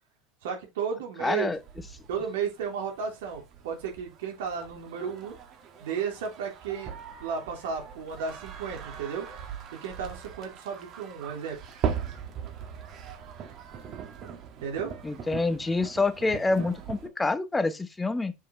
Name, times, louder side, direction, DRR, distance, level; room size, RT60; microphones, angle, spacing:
voice 1, 0.4-1.5 2.1-5.4 5.8-9.3 9.8-11.6 14.6-14.9, right 6 dB, 90° right, 3.3 m, -33 dB
voice 2, 1.2-1.6 15.0-18.3, left 3 dB, 10° left, 0.9 m, -27 dB
sound 1, 1.6-17.1, right 7 dB, 45° right, 2.0 m, -40 dB
6.7 x 5.4 x 4.3 m
supercardioid pair, 120°, 0 cm